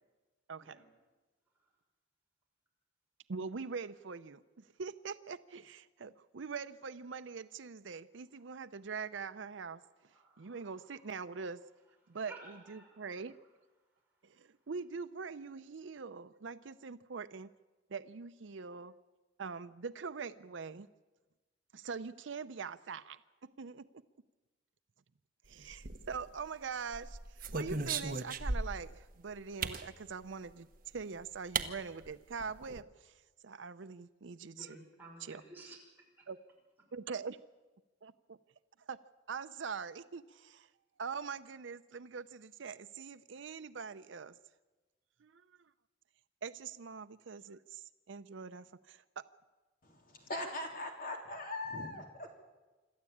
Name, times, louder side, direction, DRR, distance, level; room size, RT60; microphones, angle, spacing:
voice 1, 3.3-4.4 4.8-9.8 10.4-11.6 12.1-12.3 12.7-13.3 14.2-17.5 17.9-18.9 19.4-20.9 21.7-23.2 23.6-23.8 25.5-27.2 27.5-30.7 30.9-33.1 33.4-34.8 35.3-35.4 36.3-36.4 36.9-37.4 38.0-38.4 38.9-39.0 39.3-40.7 41.0-44.4 45.2-45.4 46.4-49.2, right 5 dB, 70° right, 13 dB, 0.6 m, -43 dB
voice 2, 9.8-11.3 12.0-13.1 34.5-35.8 36.2-36.3, right 2 dB, 10° right, -2 dB, 5.9 m, -55 dB
sound 1, 25.7-26.4 26.9-28.9 29.6-29.9 31.0-31.1 31.5-31.7 32.0-32.1 32.4-32.8, right 4 dB, 45° right, 1.2 m, -36 dB
voice 3, 49.8-52.3, left 2 dB, 45° left, 3 dB, 3.3 m, -41 dB
26.5 x 13.0 x 8.6 m, 1.2 s
head